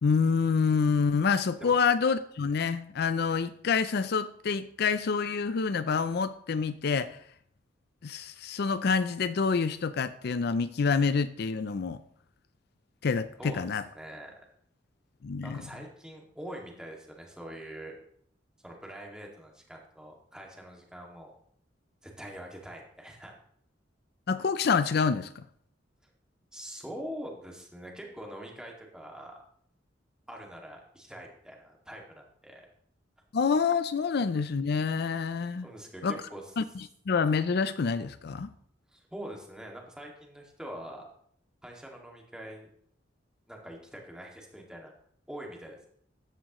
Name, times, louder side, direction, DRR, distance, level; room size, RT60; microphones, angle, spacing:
voice 1, 0.0-7.2 8.0-12.0 13.0-13.8 15.2-15.6 24.3-25.5 33.3-35.6 36.0-36.2 36.6-38.5, left 5 dB, 60° left, 13 dB, 0.4 m, -27 dB
voice 2, 13.9-14.3 15.4-17.9 18.6-21.3 22.0-23.4 26.5-29.4 30.3-32.7 35.6-36.5 38.9-41.1 41.6-42.7 43.5-44.9 45.3-45.9, equal, 5° right, 0 dB, 2.1 m, -44 dB
14.0 x 10.0 x 3.1 m, 0.65 s
head